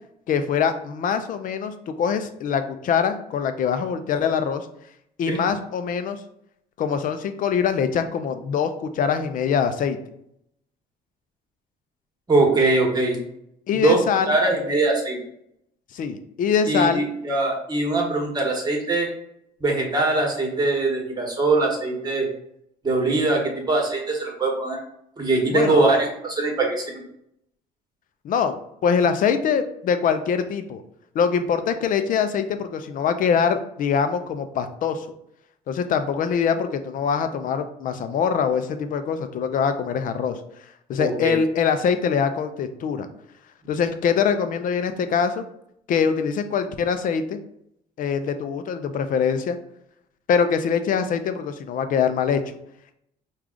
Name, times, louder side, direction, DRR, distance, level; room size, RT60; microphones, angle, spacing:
voice 1, 0.3-4.7 5.2-6.2 6.8-10.0 13.7-14.4 15.9-17.0 25.5-25.9 28.2-30.8 31.1-35.1 35.7-40.4 40.9-43.1 43.7-45.4 45.9-47.4 48.0-49.6 50.3-52.4, left 6 dB, 55° left, 9 dB, 0.5 m, -23 dB
voice 2, 12.3-13.2 13.7-14.0 14.3-15.2 16.7-19.1 19.6-22.3 22.8-24.8 25.2-27.0 41.0-41.3, right 2 dB, 25° right, 0 dB, 1.3 m, -22 dB
4.8 x 2.4 x 3.7 m, 0.75 s
cardioid pair, 110°, 17 cm